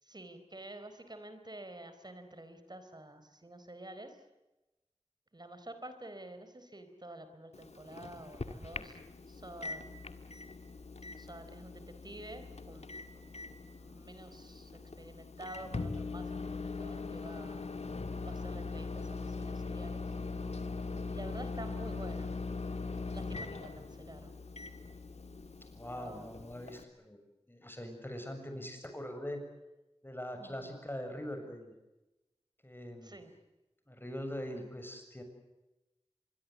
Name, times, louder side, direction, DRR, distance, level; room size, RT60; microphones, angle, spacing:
voice 1, 0.0-4.2 5.3-9.0 9.3-10.1 11.2-13.3 13.6-17.7 18.2-20.0 21.1-22.4 23.1-24.4 25.9-26.3 30.4-30.7 33.0-33.3, right 1 dB, 40° right, 9 dB, 4.2 m, -49 dB
Microwave oven, 7.5-26.8, left 3 dB, 75° left, 1.8 m, -41 dB
voice 2, 25.7-27.2 27.5-29.4 30.0-31.7 32.6-33.1 33.9-35.2, equal, 20° left, 5 dB, 7.1 m, -42 dB
25.5 x 22.5 x 8.4 m, 1.0 s
wide cardioid pair, 55°, 11 cm